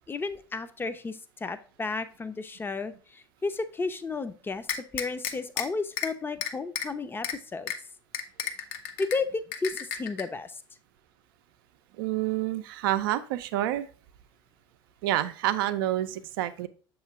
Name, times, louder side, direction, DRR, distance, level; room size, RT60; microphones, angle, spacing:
voice 1, 0.1-7.7 9.0-10.6, left 4 dB, 15° left, 11 dB, 0.6 m, -33 dB
sound 1, 4.7-5.6 6.0-6.1 6.4-6.9 7.2-7.3 7.7-7.8 8.1-9.2 9.5-10.2, left 8 dB, 60° left, 0.8 m, -31 dB
voice 2, 12.0-13.9 15.0-16.7, right 13 dB, 65° right, 12 dB, 0.5 m, -28 dB
7.2 x 3.1 x 4.7 m, 0.39 s
figure-of-eight pair, 70°, 13 cm